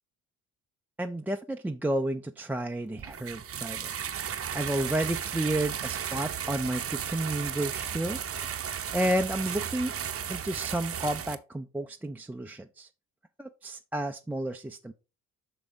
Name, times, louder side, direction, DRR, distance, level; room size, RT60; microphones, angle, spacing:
voice 1, 1.0-3.9 4.5-8.2 8.9-9.9 10.3-12.9 13.4-14.9, right 1 dB, 5° right, 0.4 m, -31 dB
sound 1, 3.0-11.4, right 8 dB, 35° right, 0.7 m, -34 dB
5.9 x 4.9 x 3.8 m
hypercardioid pair, 60°, 42 cm